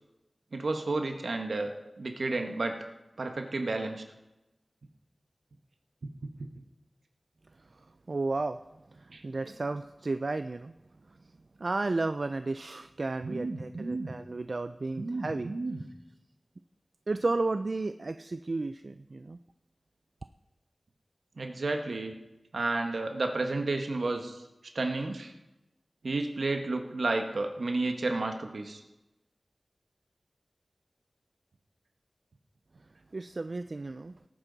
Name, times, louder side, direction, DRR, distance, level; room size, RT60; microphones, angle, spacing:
voice 1, 0.5-1.7 2.0-2.8 3.2-4.0 9.1-9.5 13.2-14.1 15.0-15.8 21.4-22.1 22.5-24.4 24.7-25.3 26.0-28.8, right 2 dB, 80° right, 5 dB, 1.3 m, -32 dB
voice 2, 7.6-8.6 8.9-10.7 11.6-15.5 17.1-19.4 33.1-34.2, right 3 dB, 60° right, 10 dB, 0.4 m, -33 dB
18.0 x 9.0 x 4.0 m, 1.0 s
wide cardioid pair, 50°, 0 cm